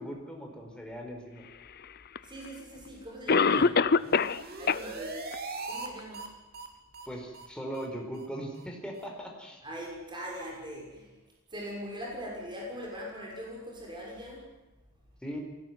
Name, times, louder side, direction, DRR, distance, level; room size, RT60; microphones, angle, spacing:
voice 1, 0.0-1.4 3.3-3.7 7.1-9.6 15.2-15.4, equal, 5° left, 1 dB, 4.7 m, -39 dB
Cough, 2.2-2.3 3.3-4.4 4.7-4.8 5.3-5.4 6.0-6.1, left 5 dB, 50° left, 0.7 m, -23 dB
voice 2, 2.2-3.7 4.6-5.2 5.6-6.3 9.6-11.1 11.5-14.5, equal, 20° right, -2 dB, 6.4 m, -41 dB
sound 1, 3.8-5.9 6.1-6.3 6.5-6.7 6.9-7.1 7.3-7.5 7.7-7.9 8.1-8.3 8.5-8.7 9.0-9.1, right 3 dB, 50° right, 3.2 m, -40 dB
22.0 x 18.0 x 9.6 m, 1.0 s
head